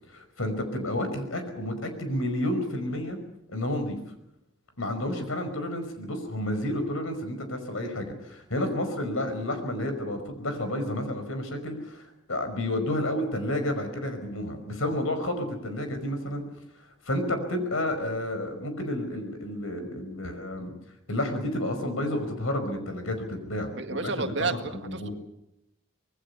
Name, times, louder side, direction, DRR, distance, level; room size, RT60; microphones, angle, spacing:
voice 1, 0.1-3.2 3.5-4.0 4.8-16.4 17.0-20.7 21.1-24.5 24.8-25.1, left 1 dB, 85° left, 8 dB, 5.2 m, -30 dB
voice 2, 23.7-25.1, right 3 dB, 60° right, 7 dB, 1.9 m, -31 dB
25.5 x 19.5 x 6.9 m, 0.82 s
head